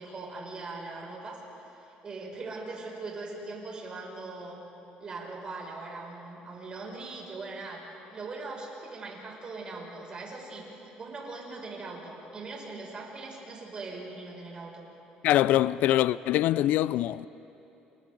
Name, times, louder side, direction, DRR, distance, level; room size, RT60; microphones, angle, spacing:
voice 1, 0.0-4.6 5.0-7.8 8.1-14.9, right 3 dB, 35° right, 6.4 m, -40 dB
voice 2, 15.2-17.3, left 14 dB, 70° left, 0.4 m, -24 dB
29.5 x 29.0 x 4.0 m
cardioid pair, 115°, 3 cm